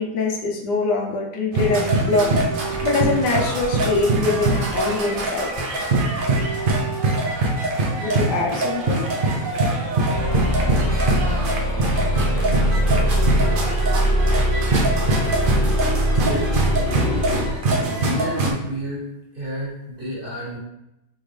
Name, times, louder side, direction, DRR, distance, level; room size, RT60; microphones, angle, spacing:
voice 1, 0.0-2.3 2.8-5.7 8.0-9.1, left 3 dB, 85° left, 0 dB, 1.3 m, -23 dB
sound 1, 1.5-18.5, right 2 dB, 85° right, 0.4 m, -23 dB
sound 2, 10.1-17.6, equal, 65° left, 0.5 m, -21 dB
voice 2, 17.9-19.0 19.3-20.6, equal, 35° right, -6 dB, 1.4 m, -29 dB
3.9 x 3.6 x 3.2 m, 0.89 s
omnidirectional pair, 1.8 m